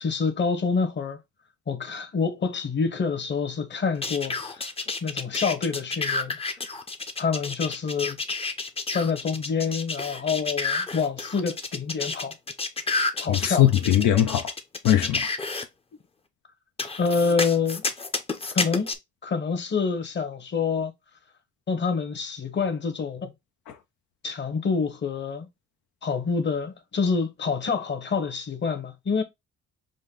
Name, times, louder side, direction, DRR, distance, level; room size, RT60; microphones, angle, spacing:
voice 1, 0.0-1.2 1.7-4.7 5.0-6.4 7.2-8.2 8.9-12.4 13.2-13.6 17.0-17.8 18.5-18.9 19.2-20.9 21.7-23.3 24.2-25.5 26.0-29.2, left 5 dB, 40° left, 1.0 m, -27 dB
sound 1, 4.0-15.6 16.8-18.9, left 3 dB, 20° left, 0.6 m, -30 dB
voice 2, 13.3-14.5 14.8-15.3, left 12 dB, 80° left, 0.6 m, -20 dB
5.2 x 2.2 x 3.7 m
cardioid pair, 90°, 30 cm